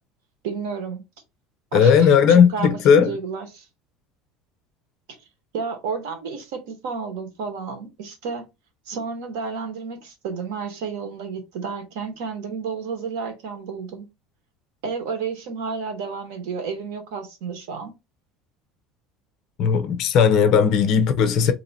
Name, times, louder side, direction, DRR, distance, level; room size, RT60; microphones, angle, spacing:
voice 1, 0.4-1.0 1.7-2.8 3.1-3.6 5.1-5.2 5.5-8.4 8.9-14.1 14.8-17.9, right 5 dB, 85° right, 1.3 m, -31 dB
voice 2, 1.7-3.1 19.6-21.5, left 7 dB, 45° left, 0.6 m, -16 dB
2.9 x 2.8 x 4.1 m
cardioid pair, 170°, 0 cm